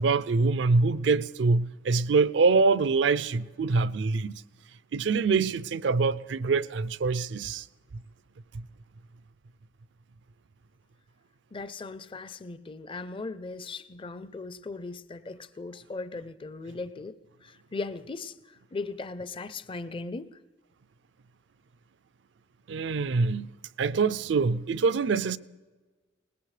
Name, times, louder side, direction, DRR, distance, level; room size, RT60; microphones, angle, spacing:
voice 1, 0.0-4.4 4.9-7.6 22.7-23.5 23.8-25.4, right 4 dB, 65° right, 0.4 m, -25 dB
voice 2, 11.5-17.1 17.4-20.3, left 3 dB, 30° left, 0.5 m, -38 dB
21.0 x 19.0 x 3.3 m
head